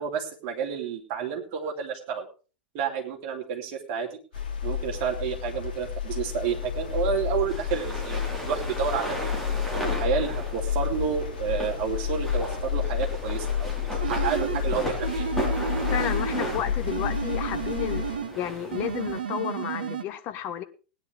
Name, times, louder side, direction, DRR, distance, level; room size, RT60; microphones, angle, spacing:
voice 1, 0.0-2.3 2.7-4.2 4.6-9.4 9.8-15.3, right 6 dB, 40° right, 1 dB, 3.1 m, -30 dB
sound 1, 4.3-18.2, left 8 dB, 60° left, 3.9 m, -30 dB
sound 2, 6.4-19.2, equal, 5° left, 4.1 m, -36 dB
sound 3, 14.0-14.7 15.0-16.5 16.9-18.4 18.7-20.0, right 7 dB, 65° right, 1.2 m, -32 dB
voice 2, 15.9-20.6, left 10 dB, 35° left, 10 dB, 1.4 m, -32 dB
19.0 x 10.0 x 3.5 m, 0.35 s
figure-of-eight pair, 95°, 5 cm